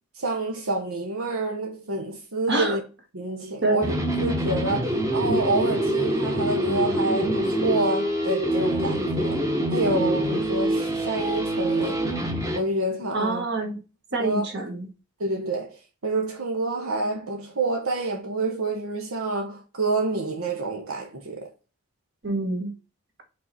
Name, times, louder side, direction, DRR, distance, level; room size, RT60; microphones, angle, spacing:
voice 1, 0.2-2.8 3.1-9.4 9.7-12.0 12.5-13.5 14.2-14.4 15.2-15.8 16.0-21.5, right 2 dB, 80° right, 1.1 m, -28 dB
sound 1, 3.8-12.6, right 1 dB, 15° right, 0.9 m, -25 dB
voice 2, 13.1-13.8 14.1-14.9 22.2-22.7, right 2 dB, 50° right, 1.7 m, -26 dB
5.5 x 4.1 x 4.2 m
head